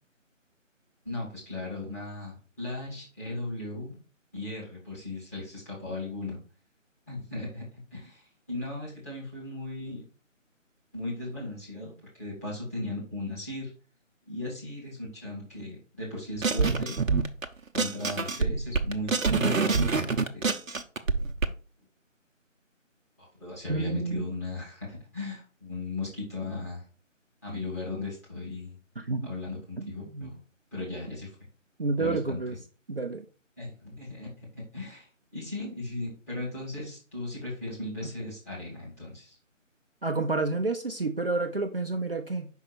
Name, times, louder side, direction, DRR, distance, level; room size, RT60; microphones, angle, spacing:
voice 1, 1.0-4.0 4.3-6.4 7.1-8.2 8.5-10.0 10.9-11.9 12.2-13.7 14.3-17.0 17.7-20.4 23.2-26.8 27.4-28.8 29.2-30.4 30.7-31.3 32.0-32.4 33.6-35.1 35.3-39.4, left 2 dB, 10° left, -8 dB, 1.8 m, -36 dB
sound 1, 16.4-17.4 17.7-21.5, right 4 dB, 80° right, 0.8 m, -26 dB
voice 2, 23.7-24.2 29.0-29.3 29.8-30.3 31.8-32.5 32.9-33.2 38.0-38.1 40.0-42.5, right 3 dB, 45° right, 4 dB, 0.6 m, -30 dB
5.6 x 4.5 x 4.2 m, 0.38 s
figure-of-eight pair, 165°, 39 cm